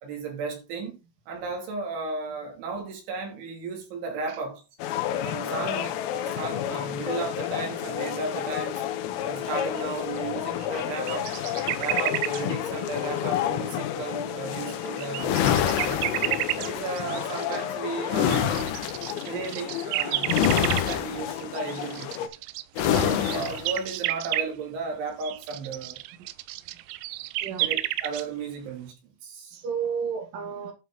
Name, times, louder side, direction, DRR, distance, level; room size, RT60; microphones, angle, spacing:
voice 1, 0.0-1.0 1.3-4.6 5.2-8.8 9.2-11.3 11.8-16.1 16.6-18.7 19.3-22.3 22.8-26.0 27.6-29.0 29.2-29.6, right 4 dB, 70° right, 4.8 m, -34 dB
sound 1, 4.8-22.3, left 11 dB, 85° left, 3.7 m, -31 dB
sound 2, 9.8-10.2 10.5-12.4 13.2-13.3 14.5-16.7 17.0-17.7 18.1-24.5 25.2-28.2, right 17 dB, 90° right, 3.3 m, -31 dB
sound 3, 15.2-16.8 18.1-19.0 20.3-21.3 22.8-23.7, left 9 dB, 70° left, 2.9 m, -25 dB
voice 2, 29.5-30.7, right 6 dB, 50° right, 3.2 m, -32 dB
12.0 x 5.8 x 3.8 m
omnidirectional pair, 5.8 m